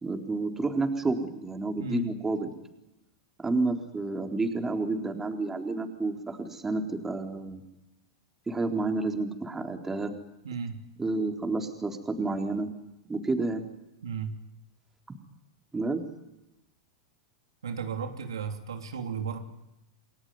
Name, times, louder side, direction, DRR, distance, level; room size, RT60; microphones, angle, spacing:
voice 1, 0.0-2.5 3.4-7.6 8.5-10.1 11.0-12.7 13.1-13.6 15.7-16.0, right 3 dB, 15° right, 4 dB, 3.9 m, -30 dB
voice 2, 1.7-2.1 10.4-10.8 14.0-14.4 17.6-19.4, right 6 dB, 80° right, 5 dB, 3.1 m, -34 dB
29.0 x 20.5 x 9.7 m, 0.93 s
hypercardioid pair, 100°, 2 cm